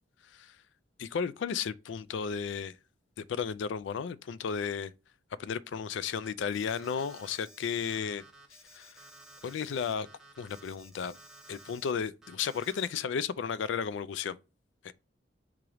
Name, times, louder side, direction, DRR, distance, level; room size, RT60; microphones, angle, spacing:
voice 1, 1.0-2.7 3.3-4.9 5.4-8.2 8.7-9.0 9.4-10.1 10.4-11.2 11.5-14.4 14.8-14.9, left 6 dB, 75° left, 0.3 m, -34 dB
Alarm, 6.2-11.9 12.2-12.9, right 2 dB, ahead, 0.9 m, -54 dB
3.7 x 2.9 x 4.8 m
head